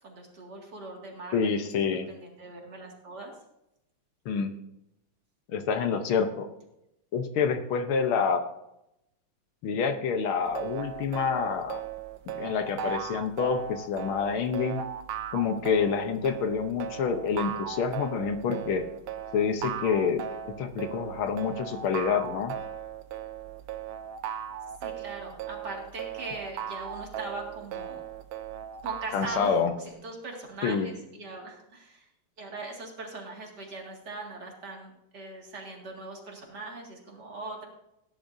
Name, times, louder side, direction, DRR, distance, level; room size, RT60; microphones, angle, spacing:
voice 1, 0.0-1.5 2.1-3.3 24.8-28.1 28.8-32.1 32.4-37.7, right 3 dB, 50° right, 0 dB, 2.7 m, -40 dB
voice 2, 1.3-2.1 4.3-4.5 5.5-6.5 7.1-8.4 9.6-11.8 12.4-14.8 15.3-18.8 19.3-20.2 20.6-22.5 29.1-29.7 30.6-30.9, left 6 dB, 75° left, 7 dB, 1.8 m, -27 dB
sound 1, 10.4-29.7, right 8 dB, 75° right, 1.5 m, -37 dB
17.5 x 10.5 x 2.7 m, 0.84 s
omnidirectional pair, 2.3 m